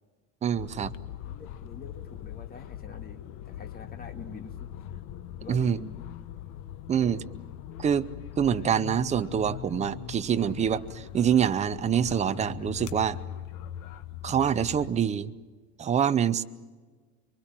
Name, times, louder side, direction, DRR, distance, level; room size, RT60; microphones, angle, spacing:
voice 1, 0.4-0.9 5.5-5.8 6.9-7.2 7.8-8.1 8.4-13.2 14.2-15.3 15.8-16.4, right 8 dB, 20° right, 12 dB, 0.6 m, -25 dB
sound 1, 0.5-14.9, left 11 dB, 55° left, 1.3 m, -41 dB
voice 2, 1.1-5.0 5.4-6.0 7.0-7.4, left 4 dB, 25° left, 6 dB, 2.0 m, -46 dB
24.0 x 23.5 x 7.5 m, 1.4 s
supercardioid pair, 140°, 37 cm